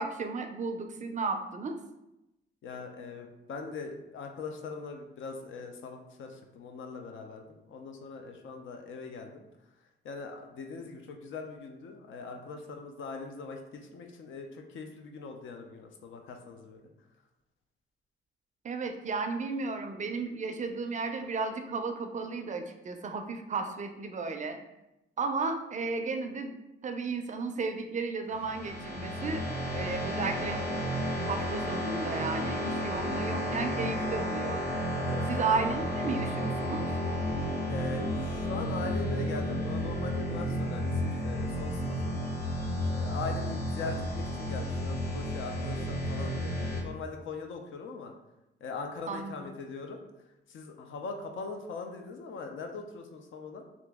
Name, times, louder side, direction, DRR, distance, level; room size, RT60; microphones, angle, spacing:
voice 1, 0.0-1.8 18.6-24.6 25.2-26.5 26.8-29.4 29.7-30.9 31.3-34.6 35.3-36.8 49.1-49.5, right 4 dB, 40° right, 6 dB, 0.4 m, -34 dB
voice 2, 2.6-9.4 10.0-16.9 31.2-31.3 35.0-35.4 37.7-42.2 42.9-48.1 48.6-50.0 50.5-53.6, left 4 dB, 75° left, 3 dB, 0.5 m, -41 dB
sound 1, 28.3-46.8, equal, 50° left, 0.9 m, -32 dB
2.9 x 2.5 x 3.4 m, 0.92 s
cardioid pair, 100°, 20 cm